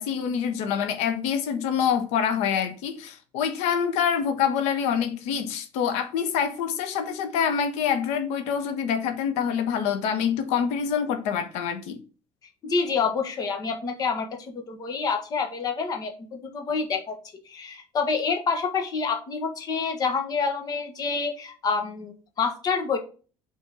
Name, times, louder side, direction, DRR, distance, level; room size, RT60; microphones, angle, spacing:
voice 1, 0.0-12.0, left 7 dB, 85° left, 1.1 m, -26 dB
voice 2, 12.6-17.2 17.4-23.0, left 5 dB, 35° left, 1.4 m, -27 dB
5.7 x 4.4 x 4.9 m
cardioid pair, 155°, 11 cm